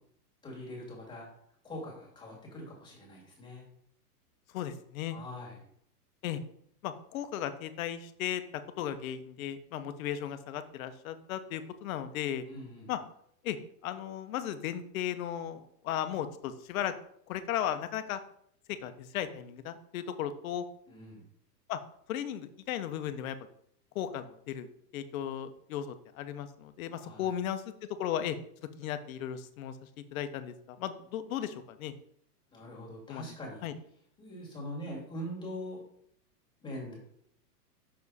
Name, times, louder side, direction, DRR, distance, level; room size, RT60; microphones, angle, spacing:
voice 1, 0.4-1.3 1.6-3.7 5.1-5.6 12.4-12.9 20.9-21.3 27.0-27.4 32.5-33.7 34.2-35.8 36.6-37.0, equal, 10° left, -3 dB, 2.1 m, -42 dB
voice 2, 4.5-5.2 6.2-6.4 6.8-8.4 8.8-12.5 12.9-13.0 13.4-13.6 13.8-16.9 17.3-18.2 18.7-20.6 21.7-21.8 22.1-23.4 23.9-27.7 28.0-28.4 28.8-29.7 30.1-31.9 33.1-33.3 33.6-33.7, left 10 dB, 60° left, 10 dB, 0.9 m, -36 dB
6.3 x 4.9 x 4.1 m, 0.68 s
supercardioid pair, 150°, 47 cm